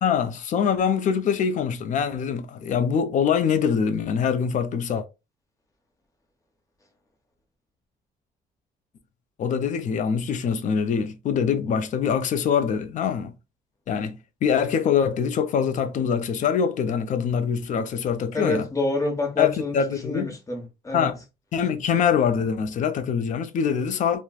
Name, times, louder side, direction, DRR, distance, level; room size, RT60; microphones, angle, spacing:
voice 1, 0.0-5.0 9.4-13.3 13.9-18.7 19.4-20.3 20.9-21.2 21.5-24.2, left 7 dB, 50° left, 0.5 m, -24 dB
voice 2, 18.3-21.1, left 2 dB, 20° left, 1.0 m, -28 dB
3.1 x 2.1 x 2.3 m
cardioid pair, 110°, 17 cm